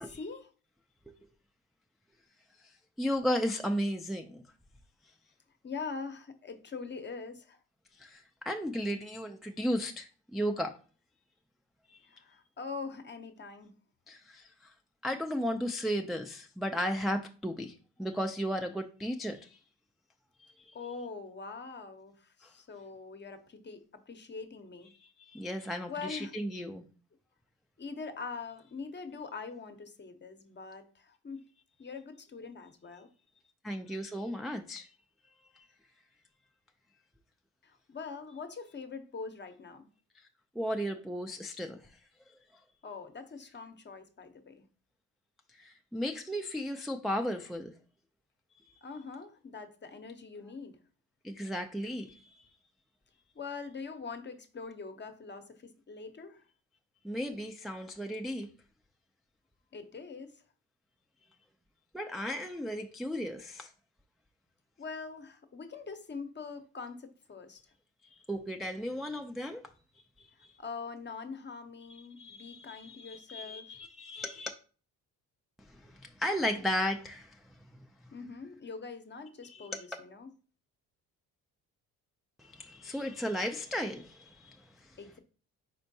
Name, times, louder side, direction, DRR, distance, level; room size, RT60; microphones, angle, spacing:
voice 1, 0.0-0.5 5.6-7.6 12.0-13.7 20.7-24.9 25.9-26.3 27.8-31.5 31.8-33.1 37.6-39.9 42.8-44.7 48.8-50.8 53.3-56.4 59.7-60.4 64.8-67.7 70.6-73.7 78.1-80.3 85.0-85.2, left 4 dB, 30° left, 0.7 m, -43 dB
voice 2, 3.0-4.4 7.9-10.8 14.1-14.7 15.0-19.6 20.4-20.7 25.0-26.8 33.6-34.9 35.5-35.7 40.2-40.3 40.6-41.9 42.3-42.4 45.5-47.7 48.6-48.7 51.2-52.5 57.0-58.5 61.9-63.7 68.0-69.7 70.2-70.5 71.9-74.5 75.6-77.6 79.5-79.8 82.4-84.9, equal, ahead, 0.3 m, -35 dB
4.4 x 4.3 x 2.7 m
supercardioid pair, 75°, 38 cm